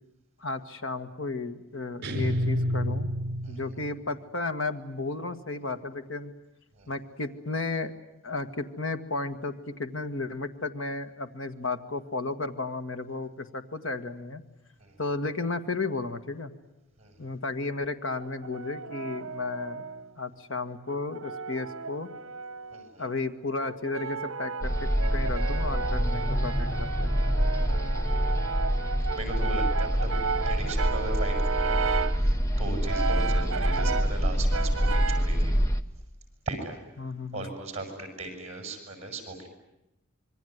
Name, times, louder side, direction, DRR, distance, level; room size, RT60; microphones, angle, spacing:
voice 1, 0.4-3.1 3.5-6.3 6.9-7.9 8.2-14.4 15.0-16.5 17.2-19.8 20.2-22.1 23.0-27.1 33.7-34.0 37.0-37.5, left 3 dB, 70° left, 9 dB, 1.8 m, -33 dB
sound 1, 2.0-4.1, equal, 50° right, 4.8 m, -29 dB
Brass instrument, 18.2-20.1 20.9-22.9 23.6-32.3 32.8-34.2 34.5-35.4, right 5 dB, 75° right, 1.0 m, -34 dB
voice 2, 22.7-23.1 27.5-28.0 29.1-30.1 30.4-31.9 32.2-35.5 36.4-36.8 37.3-39.5, right 2 dB, 30° right, 5 dB, 7.0 m, -38 dB
sound 2, 24.6-35.8, equal, 15° left, 1.0 m, -26 dB
26.5 x 23.0 x 9.5 m, 0.90 s
head